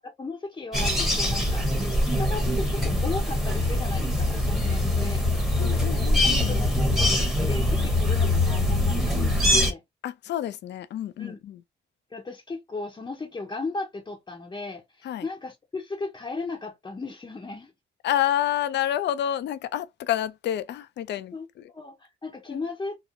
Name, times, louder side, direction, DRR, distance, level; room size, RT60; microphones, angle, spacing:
voice 1, 0.0-5.6 6.0-9.8 11.2-11.4 12.1-17.7 21.3-23.0, left 3 dB, 20° left, 0.7 m, -36 dB
sound 1, 0.7-9.7, left 1 dB, ahead, 0.9 m, -23 dB
voice 2, 5.6-6.5 10.0-11.6 15.0-15.3 18.0-21.7 22.5-22.6, left 12 dB, 60° left, 0.4 m, -29 dB
2.9 x 2.0 x 2.5 m
cardioid pair, 90°, 20 cm